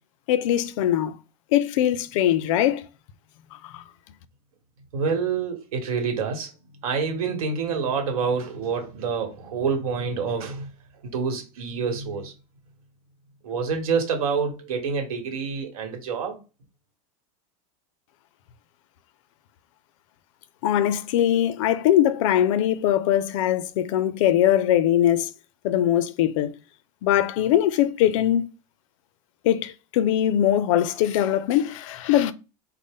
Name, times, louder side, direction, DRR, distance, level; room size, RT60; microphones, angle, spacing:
voice 1, 0.3-1.1 1.5-2.8 3.6-3.8 20.6-25.3 25.6-26.5 27.0-28.5 29.4-32.3, left 11 dB, 65° left, 0.4 m, -21 dB
voice 2, 4.9-6.5 6.8-10.7 11.0-12.3 13.4-16.4, right 5 dB, 85° right, 1.2 m, -27 dB
3.9 x 2.1 x 3.5 m
supercardioid pair, 150°, 18 cm